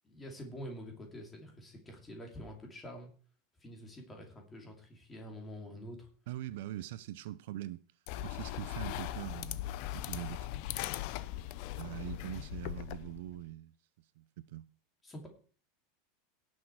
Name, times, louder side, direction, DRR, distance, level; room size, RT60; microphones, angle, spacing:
voice 1, 0.0-3.1 3.6-6.1 15.0-15.3, equal, 10° left, 2.7 m, -47 dB
voice 2, 6.3-7.8 8.2-10.7 11.8-14.7, right 14 dB, 60° right, 0.5 m, -43 dB
sound 1, 8.1-13.4, left 14 dB, 45° left, 0.6 m, -39 dB
17.5 x 6.4 x 4.6 m
supercardioid pair, 175°, 0 cm